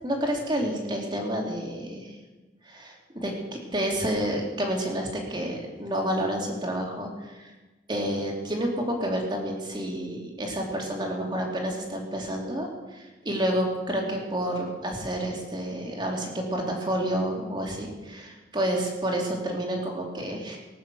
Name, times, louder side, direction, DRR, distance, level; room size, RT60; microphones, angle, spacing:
voice 1, 0.0-2.2 2.7-7.5 7.9-20.6, right 1 dB, 25° right, 0 dB, 3.0 m, -29 dB
19.0 x 9.3 x 6.3 m, 1.2 s
head